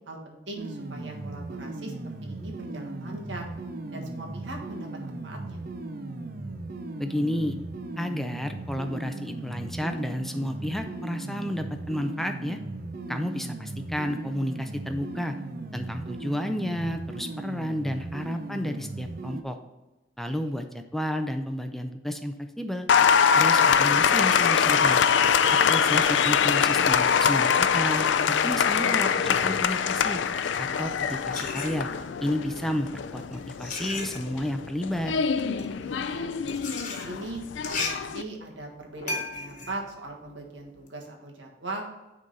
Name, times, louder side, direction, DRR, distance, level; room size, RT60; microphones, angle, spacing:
voice 1, 0.1-1.9 2.2-3.5 3.9-5.6 20.3-20.6 35.8-36.3 36.9-41.8, right 2 dB, 90° right, 1 dB, 1.5 m, -40 dB
sound 1, 0.5-19.4, right 2 dB, 55° right, 0.6 m, -37 dB
voice 2, 7.0-7.6 8.0-12.6 13.1-15.3 15.7-19.6 20.2-22.9 23.4-25.0 25.7-28.1 28.4-30.2 30.6-31.9 32.2-32.9 33.1-35.1, equal, ahead, 6 dB, 0.4 m, -31 dB
Applause, 22.9-38.2, left 7 dB, 85° left, 0.4 m, -23 dB
sound 2, 30.3-32.2 33.0-40.9, left 3 dB, 45° left, 1.2 m, -37 dB
9.6 x 3.8 x 4.0 m, 1.0 s
head